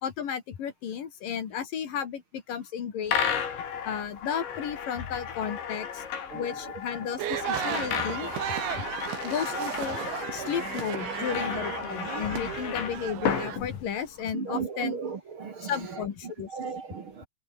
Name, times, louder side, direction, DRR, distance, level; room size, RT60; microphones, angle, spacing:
voice 1, 0.0-3.2 3.9-6.0 6.3-8.3 9.2-10.0 10.3-15.0 15.7-16.5, left 8 dB, 55° left, 3.7 m, -33 dB
sound 1, 3.1-14.3, left 8 dB, 80° left, 6.2 m, -33 dB
sound 2, 7.2-13.6, right 10 dB, 90° right, 4.8 m, -34 dB
voice 2, 14.3-15.7 16.5-17.3, right 6 dB, 50° right, 1.6 m, -35 dB
omnidirectional pair, 5.2 m